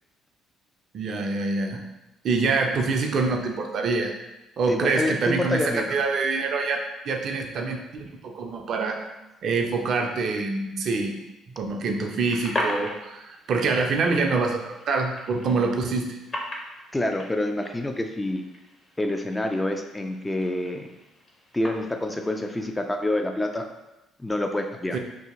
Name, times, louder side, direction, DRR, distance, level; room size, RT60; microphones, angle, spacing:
voice 1, 0.9-1.8 2.2-4.1 4.6-9.0 9.4-11.2 11.6-16.2 24.9-25.0, right 4 dB, 50° right, 3 dB, 0.4 m, -25 dB
voice 2, 4.7-6.0 16.9-18.4 19.0-20.9 21.5-23.7 24.2-25.0, left 1 dB, 15° left, 4 dB, 0.3 m, -27 dB
sound 1, 12.1-22.6, left 1 dB, 30° left, 0.7 m, -38 dB
2.8 x 2.7 x 3.6 m, 0.99 s
figure-of-eight pair, 45°, 0 cm